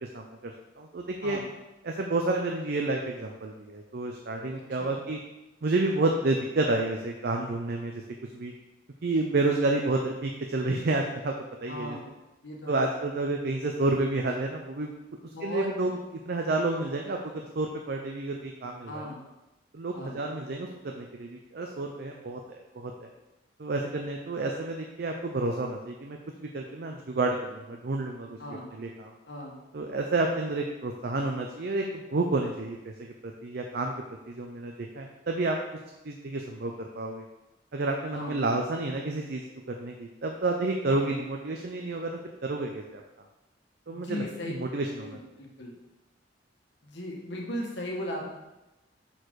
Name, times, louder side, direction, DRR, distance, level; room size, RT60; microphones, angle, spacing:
voice 1, 0.1-1.4 1.8-5.2 5.6-8.0 8.3-8.5 9.0-11.3 11.6-12.0 12.7-14.9 15.4-16.0 16.3-19.0 19.7-23.1 23.6-29.1 29.7-31.8 32.1-33.1 33.4-33.9 34.3-35.6 36.0-37.2 37.7-43.0 43.9-45.2, right 2 dB, 55° right, 2 dB, 0.6 m, -30 dB
voice 2, 4.5-5.0 9.4-9.7 11.7-12.1 12.4-12.8 15.3-15.9 18.9-19.2 19.9-20.2 28.4-28.7 29.3-29.6 38.1-38.4 40.9-41.1 43.9-44.5 45.0-45.8 46.8-48.3, left 1 dB, 65° left, -1 dB, 1.4 m, -37 dB
6.6 x 4.4 x 4.7 m, 0.99 s
head